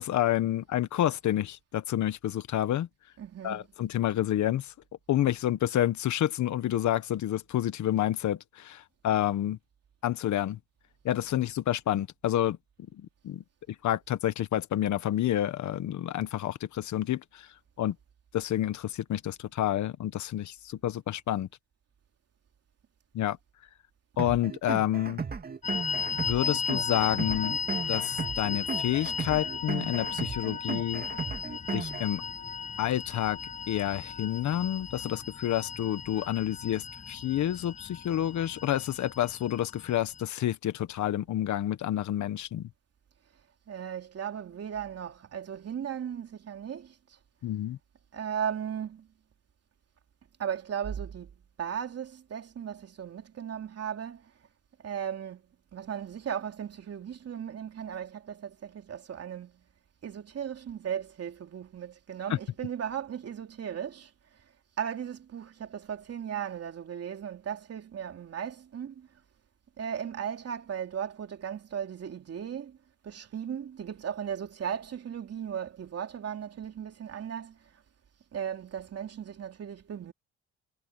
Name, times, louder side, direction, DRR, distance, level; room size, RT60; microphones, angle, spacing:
voice 1, 0.0-2.9 3.4-4.7 5.1-9.6 10.0-10.6 11.0-12.6 12.9-17.5 17.8-17.9 18.3-21.5 23.1-23.4 24.2-25.2 26.1-27.6 27.9-31.0 31.7-32.2 32.8-33.4 33.7-42.7 47.4-47.8, left 12 dB, 70° left, 1.4 m, -29 dB
voice 2, 3.2-3.7 43.7-47.2 48.1-49.1 50.4-51.3 51.6-54.3 54.8-55.4 55.7-59.6 60.0-64.4 64.8-69.1 69.8-72.8 73.0-77.8 78.3-80.1, right 8 dB, 55° right, 3.2 m, -36 dB
sound 1, 24.2-32.2, right 5 dB, 30° right, 2.3 m, -36 dB
sound 2, 25.6-40.2, left 6 dB, 25° left, 0.4 m, -36 dB
cardioid pair, 90°, 30 cm